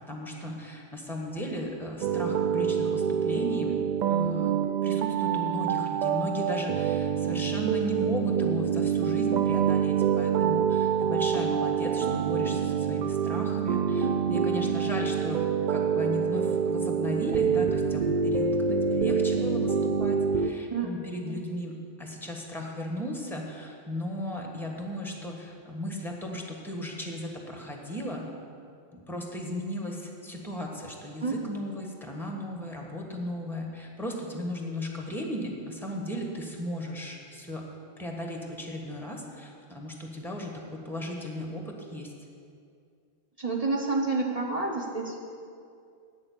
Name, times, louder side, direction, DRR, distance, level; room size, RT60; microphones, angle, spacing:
voice 1, 0.1-28.3 28.9-37.6 38.0-42.1, equal, ahead, 1 dB, 1.4 m, -36 dB
sound 1, 2.0-20.5, right 7 dB, 60° right, 0.5 m, -26 dB
voice 2, 43.4-45.2, right 3 dB, 35° right, -1 dB, 1.0 m, -29 dB
8.8 x 7.0 x 8.4 m, 2.3 s
omnidirectional pair, 1.1 m